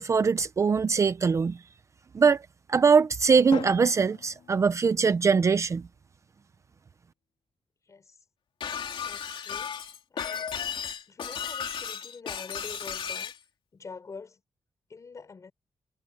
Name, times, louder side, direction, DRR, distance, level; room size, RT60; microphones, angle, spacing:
voice 1, 0.0-1.6 2.1-2.4 2.7-5.8, right 5 dB, 35° right, 0.6 m, -22 dB
Drum, 3.5-5.5, left 8 dB, 85° left, 3.7 m, -41 dB
voice 2, 7.9-8.2 9.0-9.8 10.1-10.6 11.1-13.3 13.7-14.4 14.9-15.5, left 4 dB, 35° left, 6.0 m, -45 dB
Shatter, 8.6-13.4, left 7 dB, 65° left, 2.9 m, -34 dB
wide cardioid pair, 165°, 9 cm